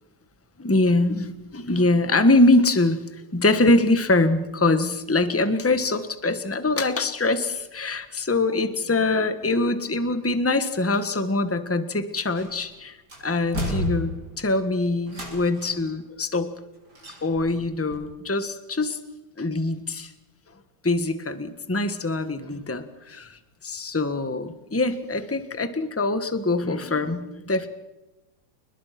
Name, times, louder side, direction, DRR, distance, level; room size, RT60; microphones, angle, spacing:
voice 1, 0.6-16.5 17.2-19.0 19.4-20.1 20.8-23.4 23.6-27.7, left 2 dB, 10° left, 11 dB, 1.2 m, -23 dB
sound 1, 12.3-12.7 13.1-14.5 15.1-15.9 16.9-17.6 17.9-18.0, equal, 55° right, 7.1 m, -32 dB
29.0 x 21.0 x 6.0 m, 1.0 s
omnidirectional pair, 2.2 m